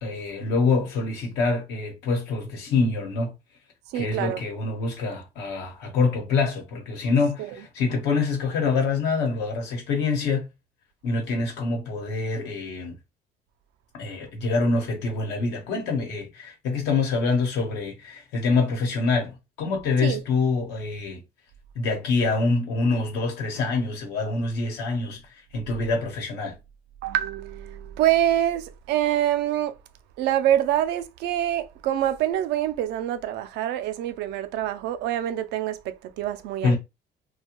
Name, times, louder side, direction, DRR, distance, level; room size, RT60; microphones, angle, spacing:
voice 1, 0.0-3.3 3.9-10.5 11.0-12.9 14.0-21.2 21.7-26.5 36.6-36.8, left 4 dB, 90° left, 1.0 m, -25 dB
voice 2, 3.9-4.4 7.4-7.6 20.0-20.2 27.0-29.8 30.2-36.7, right 12 dB, 80° right, 0.4 m, -25 dB
2.5 x 2.2 x 2.9 m
cardioid pair, 110°, 17 cm